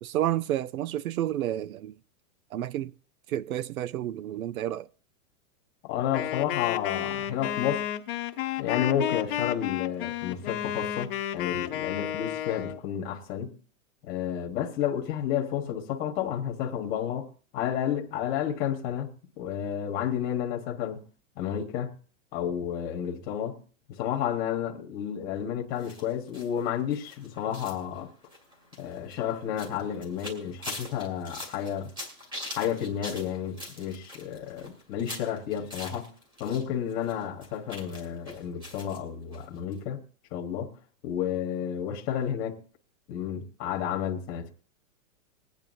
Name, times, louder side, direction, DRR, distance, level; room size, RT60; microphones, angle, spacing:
voice 1, 0.0-2.0 2.5-2.9 3.3-4.9, right 12 dB, 75° right, 0.7 m, -30 dB
voice 2, 5.8-7.8 8.6-13.5 14.0-17.3 17.5-19.1 19.4-21.0 21.4-21.9 22.3-23.6 23.9-28.1 28.8-31.9 32.5-36.1 36.4-40.0 40.3-40.7 41.0-42.6 43.1-44.5, left 9 dB, 20° left, 1.2 m, -31 dB
Wind instrument woodwind instrument, 6.1-12.8, left 11 dB, 40° left, 0.8 m, -32 dB
sound 1, 25.8-36.6 36.9-39.0 39.3-39.4 39.7-39.8, left 1 dB, 10° right, 1.9 m, -43 dB
21.0 x 9.2 x 2.6 m
supercardioid pair, 170°, 42 cm